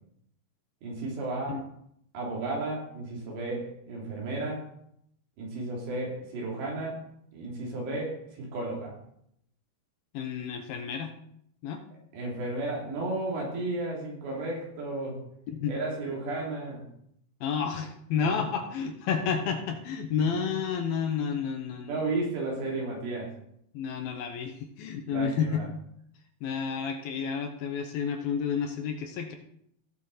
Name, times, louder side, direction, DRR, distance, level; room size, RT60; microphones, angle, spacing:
voice 1, 0.8-1.6 2.1-4.7 5.4-7.0 7.3-9.0 12.1-15.2 15.7-16.9 18.2-18.3 21.9-23.3 25.1-25.7, right 2 dB, 80° right, -2 dB, 5.4 m, -33 dB
voice 2, 10.1-11.1 11.6-11.8 15.5-15.7 17.4-22.0 23.7-25.6 26.4-29.4, left 6 dB, 70° left, 5 dB, 2.5 m, -30 dB
17.5 x 6.4 x 4.2 m, 0.71 s
omnidirectional pair, 4.9 m